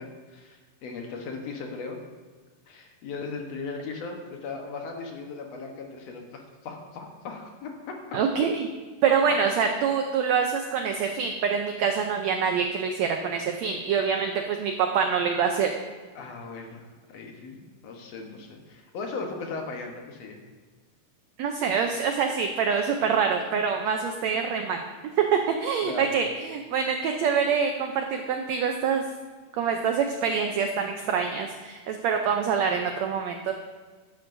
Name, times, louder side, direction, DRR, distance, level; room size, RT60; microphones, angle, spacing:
voice 1, 0.0-2.0 2.7-8.2 9.7-9.8 14.1-14.3 16.2-20.4 25.8-26.2, left 4 dB, 60° left, 2 dB, 1.9 m, -38 dB
voice 2, 8.1-8.7 9.0-15.7 21.4-24.8 25.2-29.0 29.6-33.5, right 6 dB, 90° right, 4 dB, 1.5 m, -25 dB
12.5 x 11.5 x 2.6 m, 1.4 s
omnidirectional pair, 3.9 m